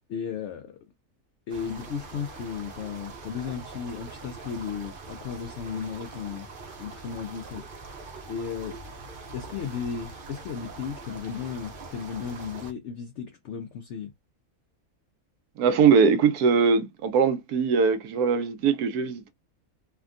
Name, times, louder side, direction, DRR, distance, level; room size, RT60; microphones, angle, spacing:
voice 1, 0.1-0.8 1.5-6.5 6.8-8.8 9.3-14.1, left 7 dB, 65° left, 0.7 m, -35 dB
sound 1, 1.5-12.7, right 3 dB, 50° right, 0.7 m, -43 dB
voice 2, 15.6-19.3, right 5 dB, 90° right, 1.2 m, -21 dB
3.4 x 2.2 x 2.4 m
omnidirectional pair, 1.6 m